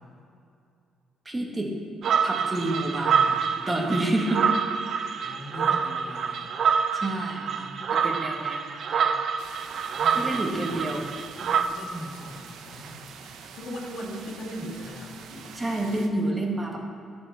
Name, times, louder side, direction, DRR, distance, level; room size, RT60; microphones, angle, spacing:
voice 1, 1.3-1.7 2.2-3.4 3.7-4.5 6.9-9.1 10.1-11.1 15.5-16.8, right 1 dB, 15° right, 0 dB, 1.8 m, -29 dB
sound 1, 2.0-11.6, right 6 dB, 55° right, 0.6 m, -26 dB
voice 2, 5.2-6.5 9.9-10.9 11.4-15.5, equal, 70° left, -1 dB, 2.2 m, -39 dB
sound 2, 9.4-16.1, right 6 dB, 85° right, 0.9 m, -45 dB
11.5 x 7.1 x 5.9 m, 2.5 s
cardioid pair, 115°, 0 cm